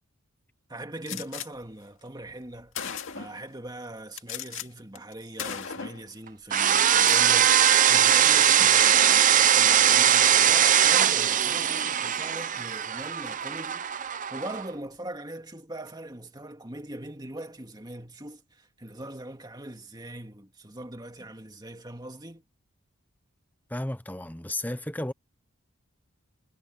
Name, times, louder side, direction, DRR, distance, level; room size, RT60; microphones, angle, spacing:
voice 1, 0.7-2.8 3.1-7.6 7.9-14.0 14.3-22.4, right 1 dB, 20° right, 2.0 m, -41 dB
Gunshot gunfire, 1.1-1.5 2.3-2.4 2.7-3.4 4.2-4.7 5.0-5.1 5.4-6.1 6.9-7.3, left 7 dB, 60° left, 2.3 m, -36 dB
sound 1, 6.5-14.6, right 9 dB, 35° right, 0.6 m, -21 dB
voice 2, 23.7-25.1, left 1 dB, 10° left, 0.8 m, -33 dB
head